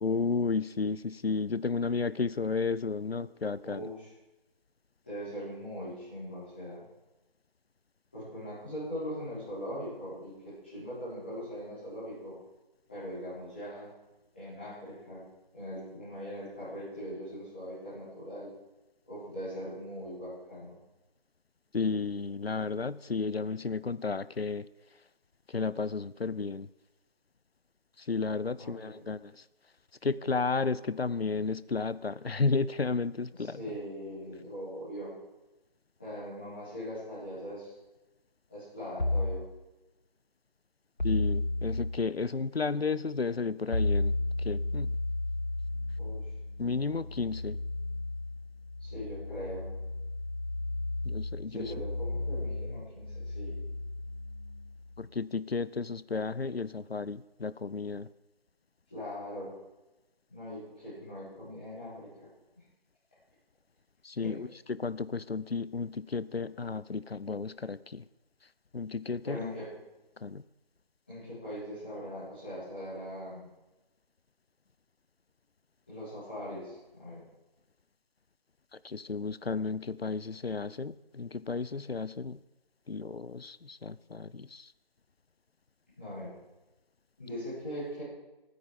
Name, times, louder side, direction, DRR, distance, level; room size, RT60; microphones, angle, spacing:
voice 1, 0.0-3.9 21.7-24.7 25.5-26.7 28.1-29.3 30.0-33.6 41.0-44.1 44.4-44.9 46.6-47.6 51.0-51.7 55.0-58.1 64.0-68.0 68.7-69.5 70.2-70.4 78.8-82.4 82.9-84.7, left 4 dB, 85° left, 18 dB, 0.6 m, -32 dB
voice 2, 3.6-4.1 5.0-6.9 8.1-12.3 12.9-13.9 14.3-15.2 15.5-18.5 19.1-20.8 28.6-29.0 33.3-35.1 36.0-37.7 38.5-39.4 46.0-46.2 48.8-49.6 51.5-53.6 58.9-59.5 60.3-62.3 64.2-64.4 69.2-69.7 71.1-73.5 75.9-77.2 86.0-86.3 87.2-88.0, equal, 10° left, -13 dB, 4.7 m, -41 dB
sound 1, 39.0-39.4 41.0-41.9 43.7-55.1, left 2 dB, 50° left, 1.1 m, -33 dB
20.5 x 9.5 x 5.1 m, 1.0 s
figure-of-eight pair, 175°, 30 cm